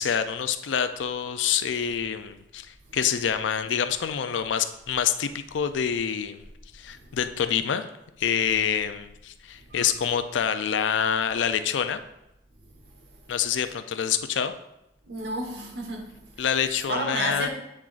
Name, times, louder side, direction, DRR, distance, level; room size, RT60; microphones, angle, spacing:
voice 1, 0.0-6.4 6.7-7.9 8.2-12.0 13.3-14.5 16.4-17.5, left 8 dB, 85° left, 10 dB, 0.4 m, -26 dB
voice 2, 15.1-16.1 16.9-17.5, right 1 dB, 70° right, 2 dB, 1.2 m, -31 dB
8.5 x 6.0 x 2.5 m, 0.87 s
head